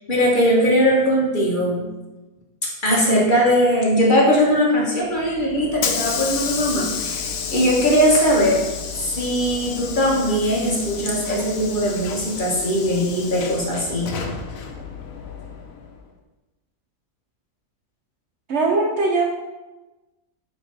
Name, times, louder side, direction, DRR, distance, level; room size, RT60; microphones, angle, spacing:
voice 1, 0.0-1.9 2.6-8.6 9.2-14.1, equal, 40° left, -3 dB, 1.1 m, -20 dB
Hiss / Sliding door, 5.1-16.0, left 6 dB, 75° left, 1.1 m, -31 dB
voice 2, 18.5-19.2, right 3 dB, 60° right, 1 dB, 0.8 m, -20 dB
5.8 x 3.2 x 5.1 m, 1.1 s
omnidirectional pair, 1.5 m